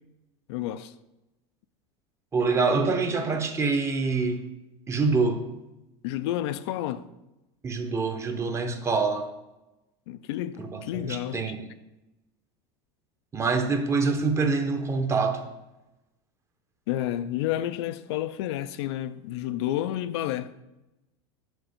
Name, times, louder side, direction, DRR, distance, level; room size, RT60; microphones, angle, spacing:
voice 1, 0.5-0.9 6.0-7.1 10.1-11.6 16.9-20.5, left 13 dB, 75° left, 0.4 m, -30 dB
voice 2, 2.3-4.4 4.9-5.4 7.6-9.3 10.6-11.6 13.3-15.4, right 4 dB, 20° right, 0.8 m, -25 dB
6.2 x 5.1 x 5.0 m
supercardioid pair, 130°, 14 cm